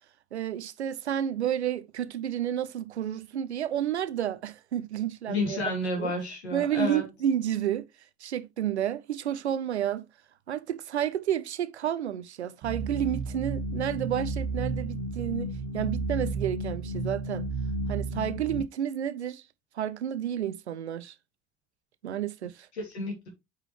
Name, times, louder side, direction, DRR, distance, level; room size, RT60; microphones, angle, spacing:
voice 1, 0.3-5.6 6.0-6.1 6.5-7.9 8.2-10.1 10.5-17.5 17.9-19.4 19.8-21.1 22.0-22.7, right 10 dB, 85° right, 0.6 m, -30 dB
voice 2, 5.3-7.1 22.7-23.3, left 2 dB, 80° left, 2.7 m, -31 dB
sound 1, 12.6-18.6, right 2 dB, 50° right, 1.8 m, -32 dB
9.1 x 5.0 x 3.1 m
figure-of-eight pair, 55°, 32 cm